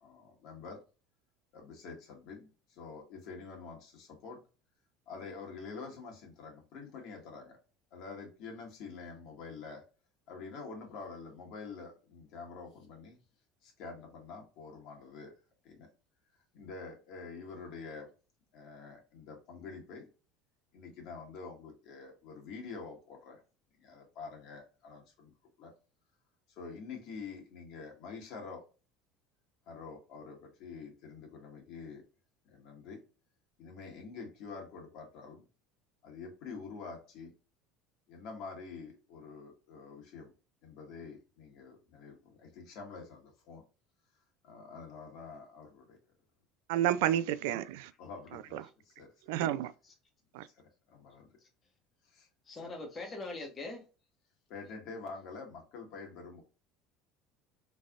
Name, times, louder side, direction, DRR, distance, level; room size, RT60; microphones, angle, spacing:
voice 1, 0.0-0.8 1.5-4.4 5.1-7.6 7.9-9.8 10.3-13.2 13.6-15.3 15.6-15.9 16.5-18.1 18.5-20.1 20.7-23.4 23.8-25.3 25.6-25.7 26.6-28.6 29.7-32.0 32.5-33.0 33.6-35.4 36.0-37.3 38.1-40.3 40.6-43.6 44.4-46.0 47.0-47.1 48.0-48.6 48.9-49.1 50.5-51.3 52.1-52.7 54.5-56.4, left 4 dB, 60° left, 1.7 m, -47 dB
voice 2, 46.7-47.9 48.3-48.6 49.3-49.7 50.3-50.5, right 12 dB, 85° right, 0.3 m, -30 dB
voice 3, 52.4-53.8 54.7-54.8, left 2 dB, 25° left, 1.3 m, -42 dB
4.0 x 3.4 x 2.4 m
cardioid pair, 140°, 0 cm